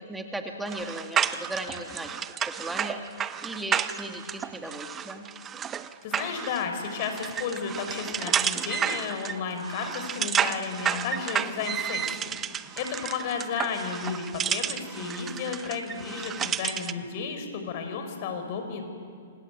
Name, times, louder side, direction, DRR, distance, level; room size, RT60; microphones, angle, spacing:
voice 1, 0.0-3.0 3.4-5.3, right 1 dB, 5° right, 3 dB, 2.4 m, -37 dB
sound 1, 0.7-17.0, right 9 dB, 20° right, 0.8 m, -31 dB
voice 2, 6.0-18.8, left 6 dB, 45° left, 6 dB, 5.3 m, -33 dB
27.5 x 24.0 x 8.2 m, 2.4 s
figure-of-eight pair, 115°, 0 cm